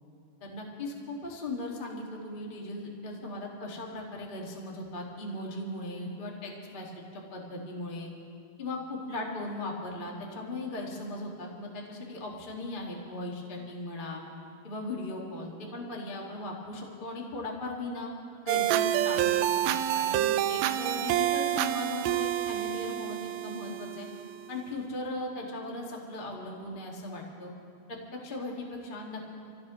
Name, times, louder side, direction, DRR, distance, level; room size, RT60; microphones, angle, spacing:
voice 1, 0.4-8.1 8.6-14.2 14.6-18.1 18.4-24.1 24.5-27.5 27.9-29.2, left 2 dB, 60° left, -1 dB, 0.5 m, -38 dB
sound 1, 18.5-24.5, right 12 dB, 85° right, 2.0 m, -28 dB
27.0 x 16.5 x 3.1 m, 2.6 s
omnidirectional pair, 4.7 m